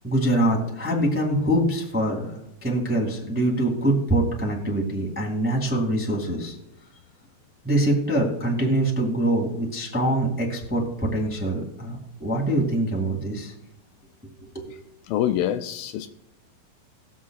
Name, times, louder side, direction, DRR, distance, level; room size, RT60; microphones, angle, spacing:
voice 1, 0.0-6.5 7.6-13.5 14.2-14.7, right 1 dB, 5° right, -2 dB, 1.4 m, -24 dB
voice 2, 15.1-16.1, left 11 dB, 80° left, 8 dB, 2.2 m, -25 dB
20.5 x 7.4 x 2.4 m, 0.87 s
omnidirectional pair, 4.2 m